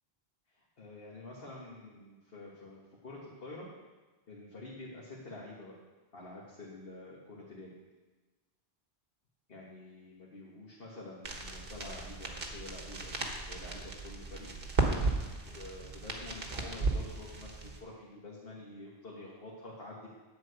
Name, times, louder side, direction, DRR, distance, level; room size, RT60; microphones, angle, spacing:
voice 1, 0.5-3.7 4.3-5.8 6.1-7.7 9.5-14.5 15.5-20.1, left 2 dB, 65° left, -5 dB, 1.7 m, -48 dB
sound 1, 11.2-17.8, right 3 dB, 60° right, 1.4 m, -35 dB
10.5 x 4.7 x 8.0 m, 1.2 s
omnidirectional pair, 1.1 m